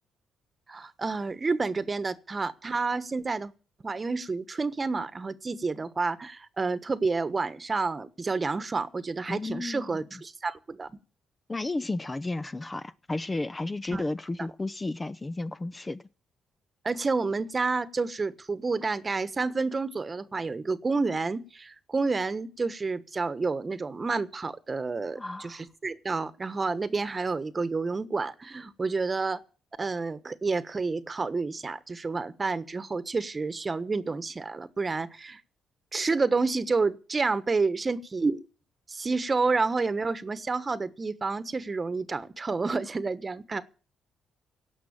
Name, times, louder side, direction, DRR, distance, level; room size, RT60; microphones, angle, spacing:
voice 1, 0.7-3.5 3.8-10.9 13.9-14.0 16.8-29.4 29.8-35.4 35.9-38.4 38.9-43.6, right 4 dB, 30° right, 1.2 m, -29 dB
voice 2, 9.3-9.9 11.5-16.0 25.2-25.6, left 2 dB, 20° left, 0.6 m, -33 dB
17.0 x 6.0 x 8.7 m
cardioid pair, 90°, 0 cm